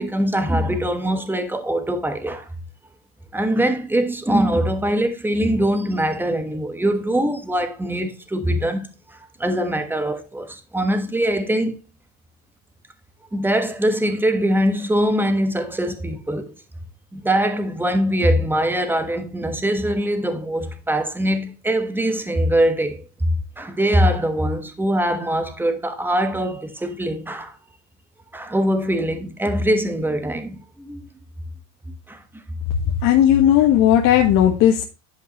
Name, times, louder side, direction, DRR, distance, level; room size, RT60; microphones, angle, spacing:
voice 1, 0.0-2.5 3.3-11.7 13.3-16.5 17.1-27.6 28.3-31.0 32.1-32.2, right 1 dB, 5° right, 1.3 m, -22 dB
voice 2, 33.0-34.8, left 10 dB, 60° left, 1.5 m, -15 dB
11.0 x 5.2 x 3.0 m
supercardioid pair, 125°, 35 cm